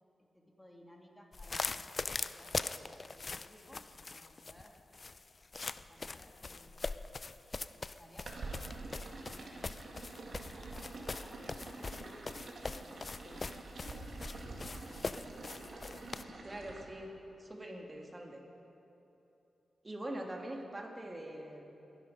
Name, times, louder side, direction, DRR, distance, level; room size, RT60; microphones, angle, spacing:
voice 1, 0.0-4.8 5.9-6.9 7.7-9.6 10.0-12.2 12.8-13.8 14.3-15.5 15.9-16.2, equal, 10° left, 0 dB, 2.9 m, -60 dB
sound 1, 1.3-16.2, left 3 dB, 45° left, 0.5 m, -41 dB
sound 2, 8.3-16.8, right 3 dB, 65° right, 2.2 m, -47 dB
sound 3, 11.5-11.6 12.0-12.2 12.7-12.9 13.2-13.4 13.9-14.2 14.5-14.6 15.1-15.3 15.6-15.8, left 2 dB, 90° left, 3.2 m, -55 dB
voice 2, 16.4-17.1 17.4-18.4 19.8-21.7, right 1 dB, 30° right, 1 dB, 2.5 m, -43 dB
22.0 x 11.0 x 5.4 m, 2.9 s
cardioid pair, 55°, 0 cm